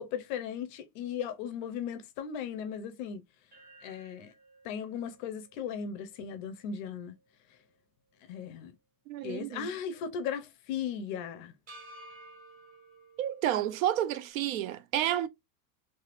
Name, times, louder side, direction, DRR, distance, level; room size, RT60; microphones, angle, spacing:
voice 1, 0.0-3.2 3.8-4.3 4.6-7.1 8.3-8.7 9.2-11.5, left 7 dB, 35° left, 0.5 m, -37 dB
sound 1, 3.5-7.8 8.2-8.3 11.7-14.3, right 1 dB, 20° right, 0.7 m, -55 dB
voice 2, 9.1-9.7 13.2-15.3, right 12 dB, 70° right, 0.6 m, -30 dB
3.4 x 3.1 x 2.4 m
supercardioid pair, 165°, 43 cm